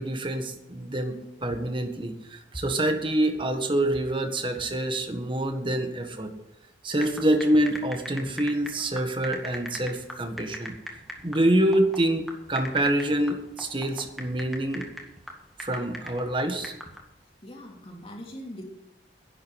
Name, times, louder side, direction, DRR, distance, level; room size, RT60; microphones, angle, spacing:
voice 1, 0.0-6.3 6.8-10.7 11.2-14.9 15.6-16.7, right 1 dB, 30° right, 6 dB, 1.5 m, -26 dB
sound 1, 7.0-17.0, equal, ahead, 1.9 m, -41 dB
voice 2, 17.4-18.6, equal, 30° left, 0 dB, 2.9 m, -41 dB
11.0 x 7.9 x 9.6 m, 0.91 s
head